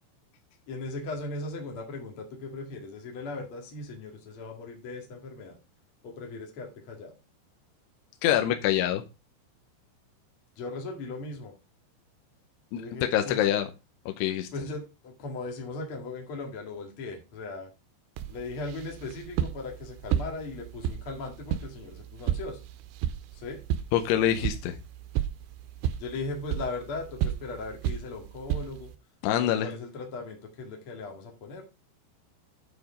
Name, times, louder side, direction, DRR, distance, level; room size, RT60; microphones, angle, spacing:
voice 1, 0.7-5.6 6.0-7.2 10.6-11.5 12.8-13.4 14.5-17.7 18.3-22.6 23.3-23.6 26.0-28.9 29.4-31.6, left 3 dB, 45° left, 1 dB, 1.8 m, -38 dB
voice 2, 8.2-9.0 12.7-12.8 13.1-13.7 14.1-14.5 23.9-24.8 29.2-29.7, left 11 dB, 80° left, 6 dB, 2.5 m, -25 dB
sound 1, 18.2-29.0, right 10 dB, 85° right, 3.0 m, -33 dB
9.3 x 4.9 x 5.0 m, 0.28 s
omnidirectional pair, 5.3 m